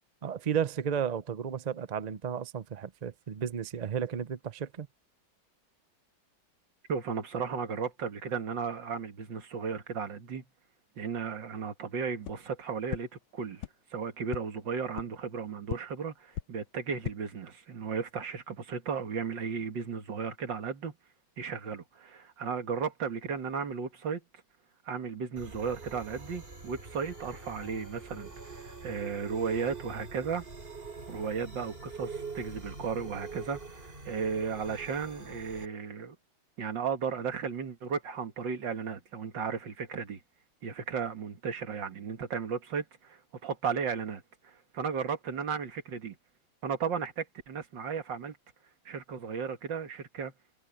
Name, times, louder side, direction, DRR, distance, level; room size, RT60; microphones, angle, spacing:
voice 1, 0.2-4.9, right 8 dB, 65° right, 0.4 m, -33 dB
voice 2, 6.9-10.4 11.0-13.7 13.9-21.0 21.4-24.2 24.9-30.4 31.1-36.2 36.6-40.2 40.6-46.2 46.6-48.4 48.9-50.3, right 6 dB, 85° right, 2.4 m, -35 dB
sound 1, 12.2-12.3 12.9-13.0 13.6-13.7 14.3-14.4 14.9-15.0 15.7-15.8 16.3-16.4 16.9-17.1, left 15 dB, 80° left, 1.3 m, -36 dB
sound 2, 25.4-35.7, right 4 dB, 30° right, 4.2 m, -44 dB
omnidirectional pair, 1.9 m